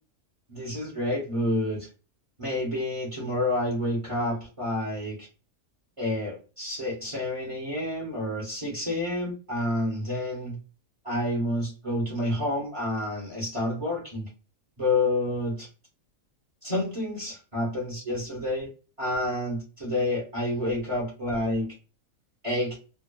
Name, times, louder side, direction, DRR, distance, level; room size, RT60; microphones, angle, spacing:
voice 1, 0.5-1.9 2.4-5.3 6.0-10.6 11.0-14.3 14.8-15.7 16.6-18.7 19.0-21.7 22.4-22.8, left 1 dB, 25° right, -3 dB, 0.9 m, -29 dB
2.7 x 2.2 x 2.2 m, 0.33 s
omnidirectional pair, 1.5 m